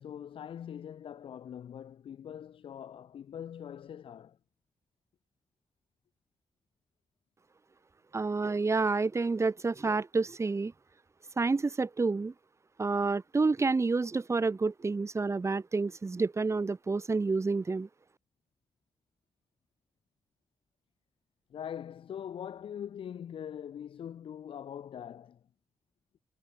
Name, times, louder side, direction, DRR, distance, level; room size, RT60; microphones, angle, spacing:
voice 1, 0.0-4.4 21.5-25.4, left 9 dB, 90° left, 3.8 m, -42 dB
voice 2, 8.1-10.7 11.4-12.3 12.8-17.9, right 3 dB, 35° right, 1.3 m, -29 dB
cardioid pair, 75°, 9 cm